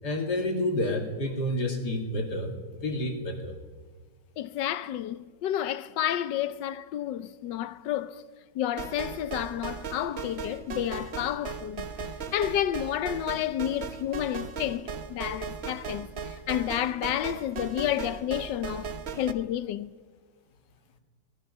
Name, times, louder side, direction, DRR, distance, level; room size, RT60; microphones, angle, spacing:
voice 1, 0.0-3.6, left 1 dB, 70° left, 3.0 m, -29 dB
voice 2, 4.4-8.2 8.5-19.9, left 11 dB, 85° left, 1.4 m, -31 dB
sound 1, 8.8-19.3, right 5 dB, 45° right, 1.0 m, -38 dB
24.0 x 20.0 x 5.5 m
omnidirectional pair, 1.9 m